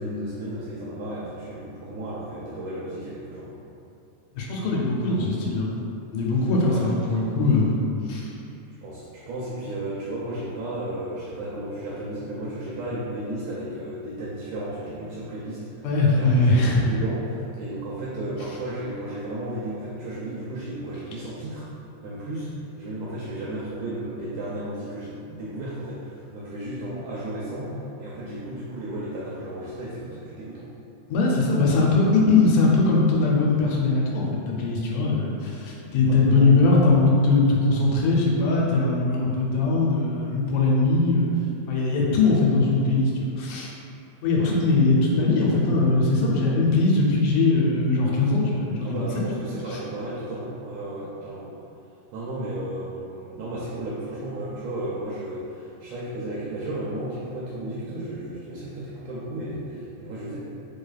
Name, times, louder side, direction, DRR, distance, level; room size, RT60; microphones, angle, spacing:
voice 1, 0.0-3.6 6.7-7.1 8.8-21.7 22.0-30.7 36.1-36.6 44.4-44.5 48.8-51.5 52.1-60.4, right 1 dB, 80° right, -7 dB, 1.5 m, -34 dB
voice 2, 4.4-5.7 6.1-7.8 8.1-8.3 15.8-16.9 31.1-41.3 41.7-43.7 44.2-49.1, left 3 dB, 85° left, -3 dB, 2.1 m, -21 dB
4.7 x 3.3 x 2.3 m, 2.7 s
omnidirectional pair, 3.5 m